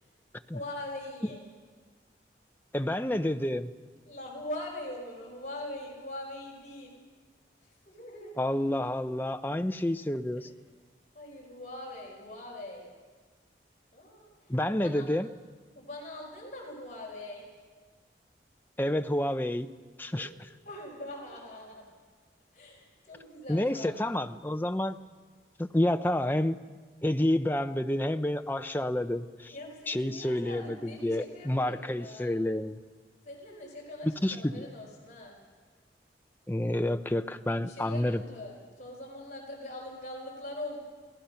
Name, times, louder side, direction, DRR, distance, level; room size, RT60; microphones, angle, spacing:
voice 1, 0.5-1.4 4.0-6.9 7.6-8.4 10.4-10.5 11.1-12.9 13.9-15.1 15.7-17.5 20.1-20.2 20.6-21.8 22.5-23.9 29.5-32.4 33.2-35.4 37.6-40.8, left 1 dB, 45° left, -2 dB, 5.0 m, -42 dB
voice 2, 2.7-3.7 8.4-10.5 14.5-15.3 18.8-19.7 20.0-20.3 23.5-25.0 25.6-29.5 29.9-32.8 34.2-34.7 36.5-38.2, left 1 dB, 10° left, 8 dB, 0.6 m, -29 dB
28.0 x 18.5 x 5.7 m, 1.4 s
head